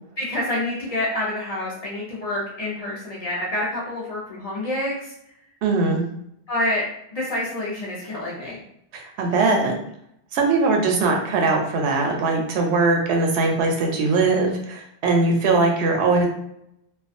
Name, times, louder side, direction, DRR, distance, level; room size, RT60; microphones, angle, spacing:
voice 1, 0.2-5.1 6.5-6.8 7.1-8.6, left 1 dB, 45° left, -5 dB, 0.6 m, -27 dB
voice 2, 5.6-6.0 8.9-9.7 10.3-16.2, right 3 dB, 90° right, 2 dB, 0.9 m, -20 dB
2.3 x 2.3 x 2.5 m, 0.73 s
omnidirectional pair, 1.1 m